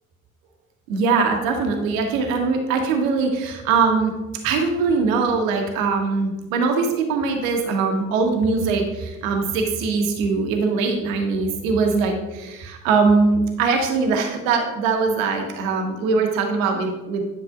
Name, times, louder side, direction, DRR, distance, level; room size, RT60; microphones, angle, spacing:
voice 1, 0.9-4.1 4.4-17.2, right 4 dB, 70° right, 3 dB, 1.3 m, -21 dB
10.5 x 6.7 x 2.5 m, 1.1 s
figure-of-eight pair, 50°, 42 cm